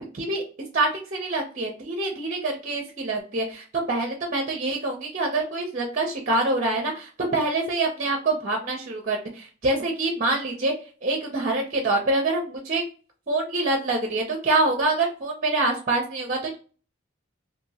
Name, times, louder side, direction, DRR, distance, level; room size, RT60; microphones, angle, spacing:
voice 1, 0.7-10.7 11.0-12.8 13.3-16.6, right 2 dB, 40° right, 2 dB, 0.6 m, -25 dB
2.8 x 2.6 x 2.8 m, 0.37 s
head